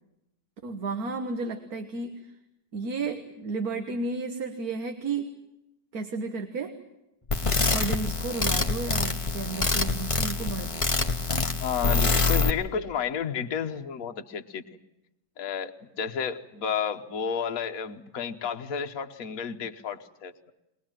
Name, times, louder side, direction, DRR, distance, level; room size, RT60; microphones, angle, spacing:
voice 1, 0.6-2.1 2.7-5.2 5.9-6.7 7.7-10.7, right 3 dB, 60° right, 5 dB, 1.9 m, -32 dB
sound 1, 7.3-12.5, left 3 dB, 20° left, 1.1 m, -25 dB
voice 2, 11.3-14.6 15.4-20.3, left 7 dB, 55° left, 5 dB, 1.5 m, -32 dB
22.0 x 20.5 x 9.0 m, 0.90 s
omnidirectional pair, 1.8 m